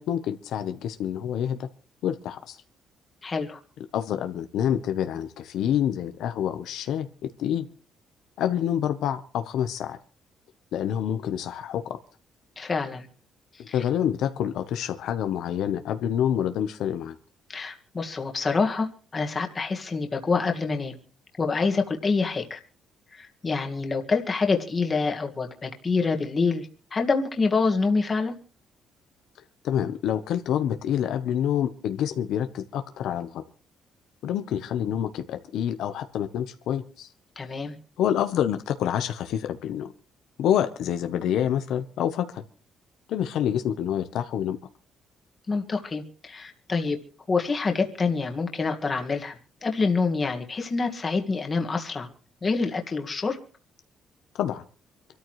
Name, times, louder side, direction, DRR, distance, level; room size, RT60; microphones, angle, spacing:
voice 1, 0.0-1.7 2.0-2.6 3.9-7.1 7.4-7.7 8.4-10.0 10.7-12.0 13.6-17.2 29.6-33.4 34.2-37.1 38.0-39.9 40.4-42.4 43.1-44.6 54.4-54.6, left 10 dB, 75° left, 8 dB, 0.9 m, -27 dB
voice 2, 3.2-3.6 12.6-13.1 13.7-13.8 17.5-21.0 21.4-22.6 23.1-28.4 37.4-37.8 45.5-47.0 47.3-52.1 52.4-53.4, left 4 dB, 25° left, 4 dB, 1.8 m, -26 dB
26.0 x 13.5 x 3.2 m, 0.37 s
cardioid pair, 155°, 0 cm